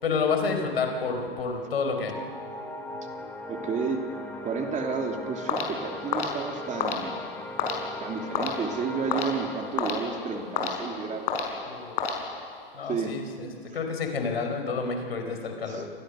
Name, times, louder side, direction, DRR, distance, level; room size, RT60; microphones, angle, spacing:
voice 1, 0.0-2.2 11.7-12.0 12.7-15.9, left 4 dB, 85° left, 4 dB, 5.1 m, -29 dB
sound 1, 2.1-13.1, left 1 dB, 5° left, 3.3 m, -40 dB
voice 2, 3.5-4.0 4.4-7.2 8.0-11.3 12.8-13.2 15.7-15.9, right 5 dB, 25° right, 3 dB, 3.1 m, -31 dB
sound 2, 5.5-12.7, left 5 dB, 60° left, 5.6 m, -32 dB
29.0 x 24.0 x 6.6 m, 2.2 s
hypercardioid pair, 105°, 30 cm